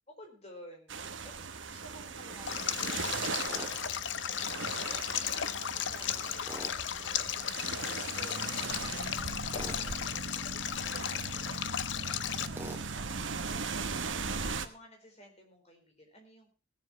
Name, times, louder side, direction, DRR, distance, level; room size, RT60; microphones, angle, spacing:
voice 1, 0.1-11.5 11.8-16.6, equal, 35° left, 2 dB, 4.0 m, -55 dB
sound 1, 0.9-14.7, right 4 dB, 80° right, 1.1 m, -39 dB
Stream, 2.5-12.5, left 10 dB, 70° left, 0.6 m, -35 dB
Tools, 3.5-3.7 6.5-6.8 9.5-9.8 12.5-12.9, right 1 dB, 10° right, 2.1 m, -42 dB
17.0 x 7.5 x 5.6 m, 0.34 s
head